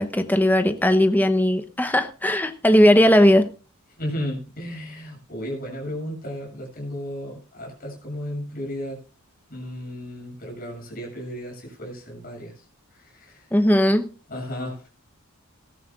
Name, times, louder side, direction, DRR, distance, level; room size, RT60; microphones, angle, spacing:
voice 1, 0.0-3.5 13.5-14.1, equal, 10° left, 9 dB, 0.8 m, -18 dB
voice 2, 4.0-9.0 9.5-12.5 12.9-13.5 14.3-14.9, equal, 40° left, 0 dB, 7.3 m, -34 dB
19.0 x 13.5 x 2.4 m, 0.35 s
head